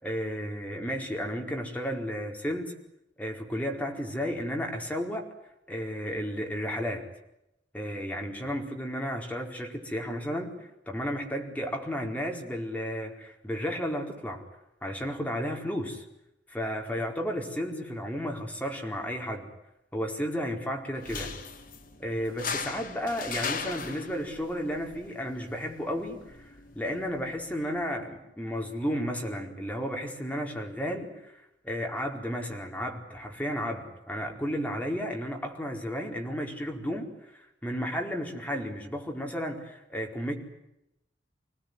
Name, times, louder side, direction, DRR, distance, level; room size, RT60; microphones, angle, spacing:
voice 1, 0.0-2.7 3.2-5.3 5.7-7.0 7.7-10.5 10.9-14.4 14.8-16.0 16.5-19.5 19.9-21.3 22.0-26.2 26.7-37.1 37.6-40.3, equal, 10° left, 1 dB, 4.7 m, -33 dB
sound 1, 20.9-27.9, left 5 dB, 50° left, 3.1 m, -39 dB
26.5 x 19.0 x 9.8 m, 0.85 s
head